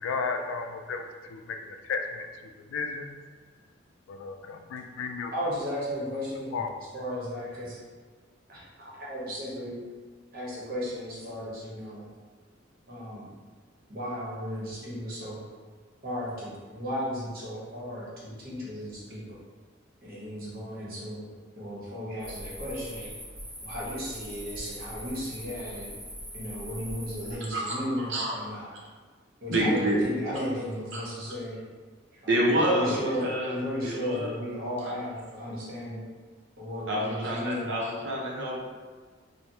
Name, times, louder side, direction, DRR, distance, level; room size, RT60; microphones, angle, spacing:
voice 1, 0.0-3.2 4.1-5.3 6.5-6.7, left 4 dB, 85° left, 6 dB, 0.3 m, -34 dB
voice 2, 5.3-7.8 8.5-9.8 10.3-12.1 12.9-13.3 13.9-15.4 16.0-19.2 20.0-21.3 21.5-23.1 23.6-25.9 26.3-28.7 29.4-31.6 32.2-36.0 36.6-37.7, equal, 50° right, -7 dB, 1.0 m, -35 dB
sound 1, 22.2-27.4, equal, 25° right, 1.2 m, -41 dB
voice 3, 27.4-28.4 29.5-30.0 30.3-30.4 30.9-31.0 32.3-33.6 33.8-34.3 34.8-34.9 36.9-38.6, right 1 dB, 65° right, -3 dB, 0.7 m, -28 dB
3.3 x 2.1 x 2.7 m, 1.5 s
head